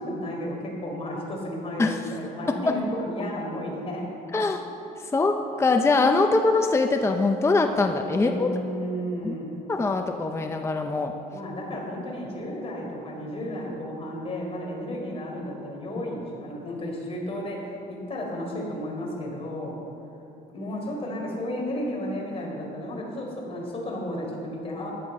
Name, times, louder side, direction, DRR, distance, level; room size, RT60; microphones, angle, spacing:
voice 1, 0.0-4.1 8.1-9.5 11.3-19.8 20.5-24.9, equal, 35° left, -1 dB, 3.9 m, -33 dB
voice 2, 4.3-4.7 5.0-8.5 9.2-9.4 9.7-11.1, left 3 dB, 15° left, 5 dB, 0.7 m, -23 dB
15.5 x 11.0 x 5.4 m, 2.8 s
cardioid pair, 110°, 17 cm